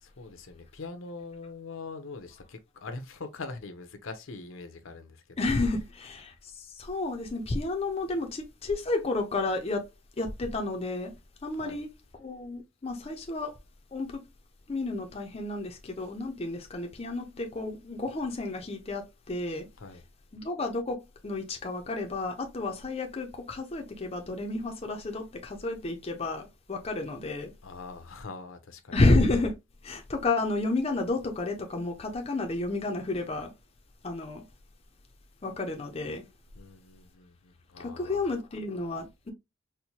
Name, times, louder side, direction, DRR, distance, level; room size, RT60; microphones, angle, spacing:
voice 1, 0.0-5.2 11.6-11.8 19.8-20.0 27.6-28.9 36.5-38.3, left 3 dB, 70° left, 0.6 m, -43 dB
voice 2, 5.4-9.9 10.2-11.1 11.4-11.9 12.2-13.5 13.9-14.2 14.7-19.7 20.3-27.5 28.9-29.5 29.8-33.5 34.0-34.4 35.4-36.3 37.8-39.3, left 2 dB, 30° left, 0.4 m, -31 dB
4.3 x 2.1 x 2.7 m
head